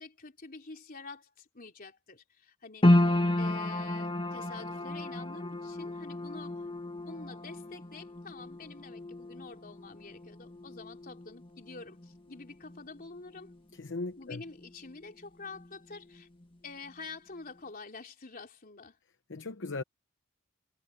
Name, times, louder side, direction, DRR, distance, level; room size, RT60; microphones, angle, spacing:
voice 1, 0.0-3.0 3.4-6.7 7.1-13.5 14.2-16.3 16.6-19.0, left 4 dB, 40° left, 3.6 m, -47 dB
sound 1, 2.8-15.2 15.5-16.4 16.9-17.0, left 1 dB, 25° left, 1.8 m, -32 dB
voice 2, 13.7-14.4 19.3-19.8, left 3 dB, 55° left, 0.9 m, -37 dB
head